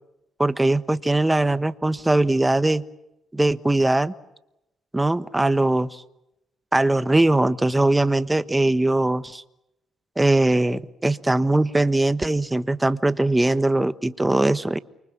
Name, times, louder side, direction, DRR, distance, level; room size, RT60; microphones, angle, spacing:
voice 1, 0.4-2.8 3.3-4.1 4.9-6.0 6.7-9.4 10.2-14.8, right 2 dB, 10° right, 12 dB, 1.2 m, -21 dB
29.5 x 24.5 x 7.3 m, 0.89 s
cardioid pair, 90°, 0 cm